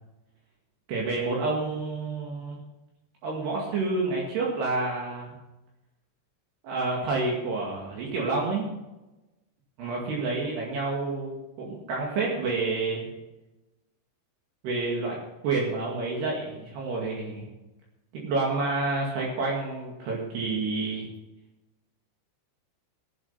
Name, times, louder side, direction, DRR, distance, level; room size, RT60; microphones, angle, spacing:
voice 1, 0.9-2.6 3.2-5.3 6.6-8.8 9.8-13.1 14.6-15.2 15.4-17.5 18.1-21.1, right 3 dB, 65° right, -3 dB, 4.1 m, -29 dB
18.5 x 7.5 x 5.7 m, 1.0 s
omnidirectional pair, 5.2 m